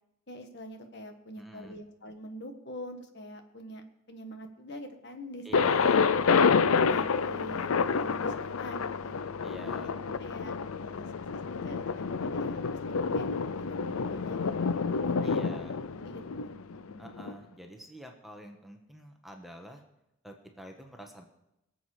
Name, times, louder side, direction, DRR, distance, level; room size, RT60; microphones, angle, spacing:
voice 1, 0.3-5.4 6.3-6.4 6.8-7.7 8.0-9.2 9.8-10.5 10.8-11.1 11.5-15.6 15.9-16.6 16.9-17.1, left 1 dB, 55° left, 5 dB, 1.6 m, -45 dB
voice 2, 1.3-1.8 5.4-6.1 9.4-9.9 15.2-15.8 17.0-19.8 20.2-21.3, equal, ahead, 2 dB, 1.3 m, -46 dB
Thunder, 5.5-17.3, left 5 dB, 85° left, 0.6 m, -28 dB
23.5 x 7.8 x 5.0 m, 0.87 s
head